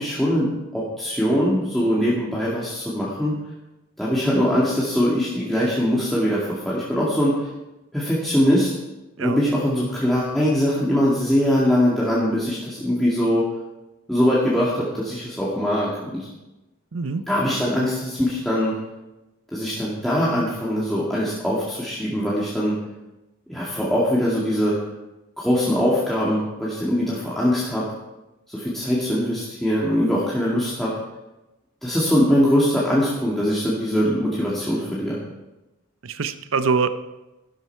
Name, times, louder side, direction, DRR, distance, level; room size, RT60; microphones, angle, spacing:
voice 1, 0.0-3.3 4.0-7.5 7.9-8.7 9.2-13.4 14.1-16.3 17.3-18.7 19.5-22.8 23.5-24.8 25.4-27.8 28.5-30.9 31.8-35.2, equal, ahead, -8 dB, 2.1 m, -22 dB
voice 2, 16.9-17.2 31.9-32.0 36.0-36.9, right 5 dB, 75° right, 11 dB, 0.7 m, -24 dB
12.5 x 12.0 x 4.6 m, 1.0 s
head